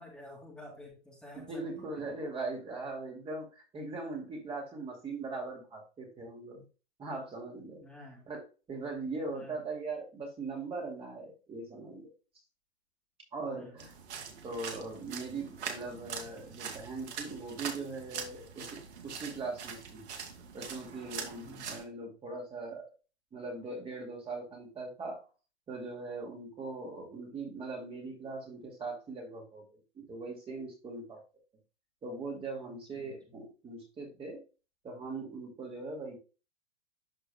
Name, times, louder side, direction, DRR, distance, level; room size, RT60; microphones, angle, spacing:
voice 1, 0.0-2.1 7.8-8.3 9.3-9.6 13.5-13.8 21.4-21.7 32.7-33.4, left 1 dB, ahead, -1 dB, 2.3 m, -51 dB
voice 2, 1.4-6.6 7.0-7.8 8.3-8.4 8.7-12.1 13.3-13.9 14.4-20.1 20.5-22.9 23.3-25.2 25.7-31.2 32.0-34.4 34.8-36.2, right 3 dB, 15° right, 0 dB, 2.3 m, -40 dB
sound 1, 13.8-21.8, right 6 dB, 75° right, 2.3 m, -43 dB
13.0 x 4.6 x 2.2 m, 0.33 s
hypercardioid pair, 145°, 34 cm